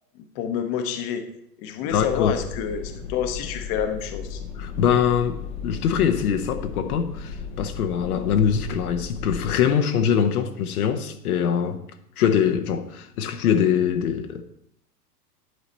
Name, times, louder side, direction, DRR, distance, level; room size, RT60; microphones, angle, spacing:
voice 1, 0.3-1.3 1.6-4.4, left 8 dB, 35° left, 0.9 m, -28 dB
voice 2, 1.9-2.4 4.6-11.8 12.2-14.4, left 8 dB, 65° left, 0.8 m, -23 dB
sound 1, 1.9-9.6, left 5 dB, 15° left, 0.6 m, -35 dB
10.5 x 4.0 x 4.2 m
hypercardioid pair, 115°, 48 cm